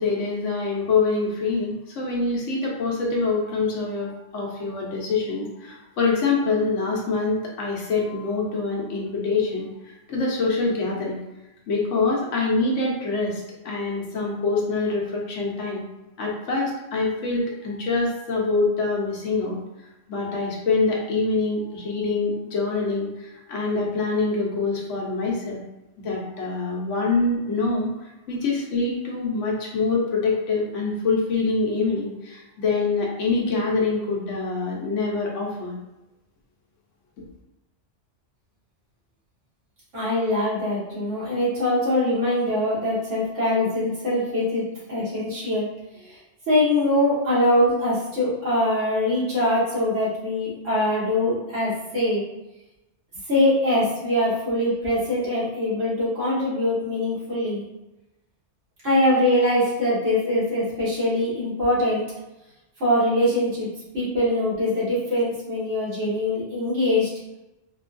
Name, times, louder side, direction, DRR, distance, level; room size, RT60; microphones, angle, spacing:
voice 1, 0.0-11.2 11.7-15.8 16.2-19.6 20.1-25.6 26.0-35.8, left 3 dB, 80° left, -2 dB, 1.2 m, -25 dB
voice 2, 39.9-44.6 44.9-45.7 46.0-46.2 46.5-52.2 53.3-57.6 58.8-62.0 62.8-63.7 63.9-67.1, left 1 dB, 90° right, -9 dB, 1.9 m, -23 dB
4.5 x 2.3 x 2.5 m, 0.98 s
omnidirectional pair, 1.2 m